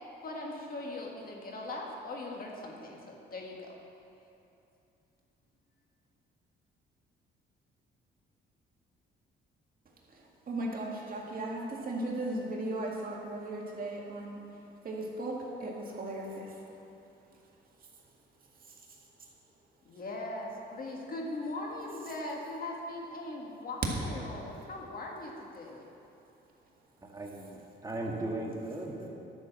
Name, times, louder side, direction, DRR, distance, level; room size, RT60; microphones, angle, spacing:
voice 1, 0.2-3.8 19.8-25.9, left 2 dB, 45° left, 0 dB, 1.8 m, -40 dB
voice 2, 10.1-14.4 14.8-16.6, right 1 dB, 45° right, -2 dB, 2.0 m, -37 dB
voice 3, 27.0-29.1, right 2 dB, 15° right, -1 dB, 1.9 m, -37 dB
11.0 x 6.3 x 7.3 m, 2.8 s
cardioid pair, 90°, 20 cm